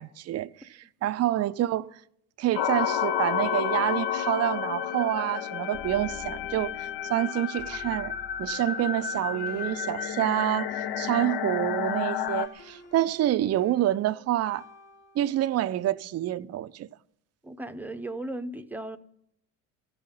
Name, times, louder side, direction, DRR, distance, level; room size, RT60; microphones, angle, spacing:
voice 1, 0.0-1.9 2.4-14.6 15.2-16.9, right 13 dB, 35° right, 0.5 m, -27 dB
sound 1, 2.5-12.5, left 9 dB, 55° left, 0.7 m, -31 dB
sound 2, 5.7-11.7 12.3-15.5, left 3 dB, 35° left, 3.4 m, -50 dB
voice 2, 17.4-19.0, right 1 dB, 5° right, 0.7 m, -36 dB
14.5 x 5.5 x 9.8 m
hypercardioid pair, 70°, 44 cm